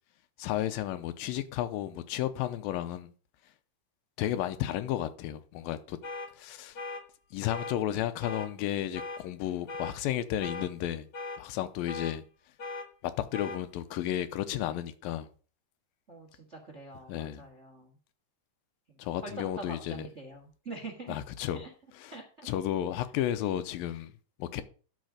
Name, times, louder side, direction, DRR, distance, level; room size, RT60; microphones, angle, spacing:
voice 1, 0.4-3.1 4.2-6.0 6.4-6.8 7.3-11.1 11.4-12.2 13.0-15.3 17.1-17.4 19.0-20.0 21.1-21.6 22.0-22.1 22.5-24.1 24.4-24.6, left 12 dB, 90° left, 2.5 m, -33 dB
sound 1, 6.0-6.3 6.8-7.0 7.5-7.8 8.2-8.5 8.9-9.2 9.7-9.9 10.4-10.7 11.1-11.4 11.9-12.1 12.6-12.9 13.3-13.6, left 3 dB, 45° left, 1.2 m, -38 dB
voice 2, 16.1-17.9 19.2-21.2 21.5-21.7 22.1-22.5, right 2 dB, 40° right, 1.0 m, -44 dB
10.5 x 6.7 x 5.0 m
omnidirectional pair, 4.1 m